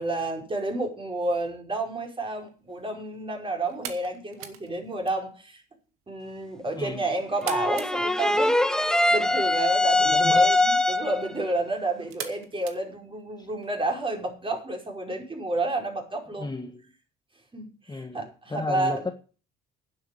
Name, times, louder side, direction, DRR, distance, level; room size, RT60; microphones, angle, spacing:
voice 1, 0.0-5.6 6.1-16.5 17.5-19.0, right 2 dB, 25° right, 5.4 m, -30 dB
sound 1, 2.3-13.7, right 10 dB, 80° right, 2.1 m, -46 dB
voice 2, 6.7-7.1 10.0-10.5 13.4-13.5 16.4-16.8 17.9-18.2 18.5-19.1, left 3 dB, 20° left, 1.7 m, -33 dB
sound 2, 7.4-11.3, left 2 dB, 5° left, 1.1 m, -22 dB
10.0 x 8.4 x 8.7 m
supercardioid pair, 80°, 21 cm